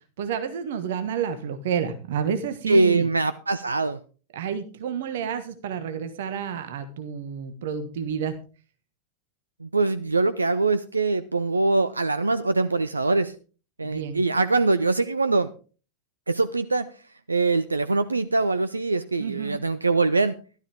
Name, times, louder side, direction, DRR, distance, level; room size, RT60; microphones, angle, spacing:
voice 1, 0.2-3.1 4.3-8.4 13.8-14.2 19.2-19.6, right 7 dB, 55° right, 9 dB, 1.4 m, -30 dB
voice 2, 2.7-4.0 9.6-13.3 13.8-15.5 16.3-16.9 17.3-20.4, right 3 dB, 80° right, 13 dB, 0.5 m, -23 dB
13.0 x 12.5 x 3.5 m, 0.36 s
figure-of-eight pair, 90°, 0 cm